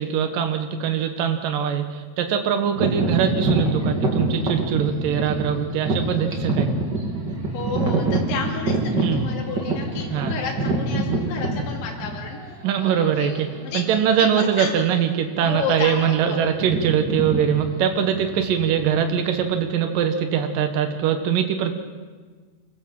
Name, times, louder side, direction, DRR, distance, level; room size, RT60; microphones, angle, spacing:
voice 1, 0.0-6.7 9.0-9.2 10.1-10.3 12.6-13.5 13.7-21.8, right 8 dB, 70° right, 6 dB, 2.1 m, -22 dB
sound 1, 2.7-12.5 13.2-13.3 13.9-14.2 14.4-14.7 15.3-15.9 16.1-19.6, right 2 dB, 30° right, 2.2 m, -25 dB
voice 2, 7.5-12.5 12.8-13.8 14.2-14.7 15.4-16.5, left 5 dB, 65° left, -1 dB, 4.8 m, -31 dB
25.5 x 16.5 x 7.7 m, 1.5 s
omnidirectional pair, 5.8 m